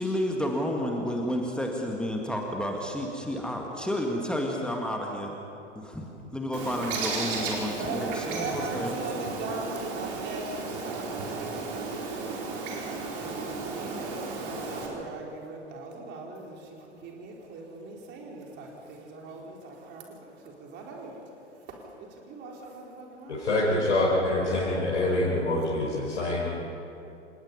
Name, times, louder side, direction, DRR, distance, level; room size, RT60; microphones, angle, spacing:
voice 1, 0.0-5.3 5.8-9.0, equal, ahead, 0 dB, 1.8 m, -31 dB
Bird, 6.5-14.9, right 3 dB, 45° right, 4.8 m, -34 dB
voice 2, 7.7-12.0 13.1-21.2 21.6-23.5, right 3 dB, 30° right, -1 dB, 4.2 m, -40 dB
voice 3, 23.3-26.5, left 1 dB, 65° left, -6 dB, 5.0 m, -25 dB
28.0 x 19.0 x 5.5 m, 2.8 s
figure-of-eight pair, 100°, 36 cm